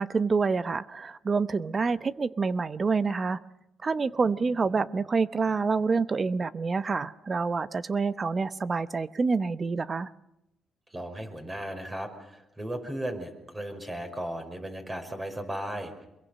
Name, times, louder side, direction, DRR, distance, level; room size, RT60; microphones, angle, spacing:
voice 1, 0.0-3.4 3.8-10.1, right 4 dB, 35° right, 15 dB, 0.9 m, -27 dB
voice 2, 10.9-16.1, right 1 dB, 20° right, 5 dB, 5.5 m, -36 dB
25.5 x 22.5 x 6.6 m, 0.87 s
cardioid pair, 90°, 0 cm